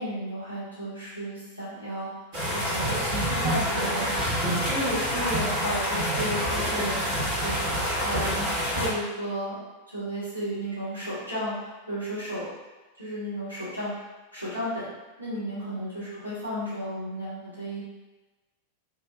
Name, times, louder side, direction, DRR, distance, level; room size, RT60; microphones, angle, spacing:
voice 1, 0.0-2.1 2.5-9.6 9.9-12.4 13.0-13.9 14.3-14.9 15.2-17.8, equal, 90° right, -11 dB, 1.1 m, -33 dB
sound 1, 2.3-8.9, equal, 50° right, 1.0 m, -27 dB
2.6 x 2.2 x 2.2 m, 1.2 s
figure-of-eight pair, 90°, 0 cm